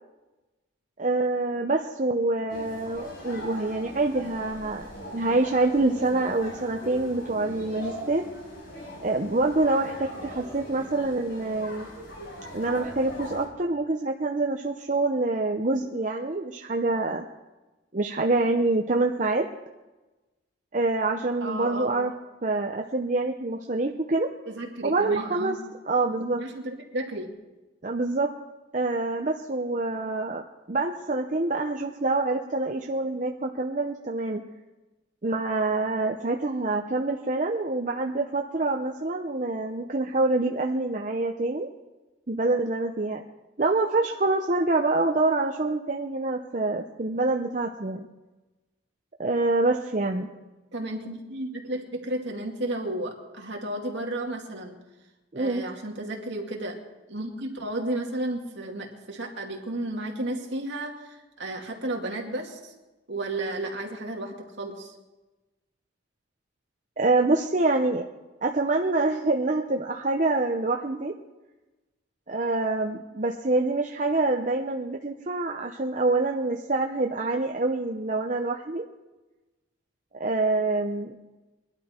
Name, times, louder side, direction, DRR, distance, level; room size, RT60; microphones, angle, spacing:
voice 1, 1.0-4.9 5.1-8.2 9.0-11.9 12.5-17.2 17.9-19.5 20.7-22.1 22.4-24.3 24.8-25.6 25.9-26.4 27.8-28.3 28.7-34.4 35.2-41.7 42.3-43.2 43.6-48.1 49.2-50.3 55.3-55.6 67.0-68.1 68.4-71.1 72.3-78.8 80.2-81.1, right 2 dB, 40° right, 2 dB, 0.7 m, -26 dB
sound 1, 2.5-13.5, equal, 50° left, 5.2 m, -40 dB
voice 2, 21.4-22.0 24.5-25.6 26.4-27.3 50.7-54.8 55.4-56.8 57.1-62.7 63.1-65.0, right 1 dB, 65° right, 1 dB, 2.3 m, -33 dB
21.5 x 12.0 x 4.4 m, 1.1 s
head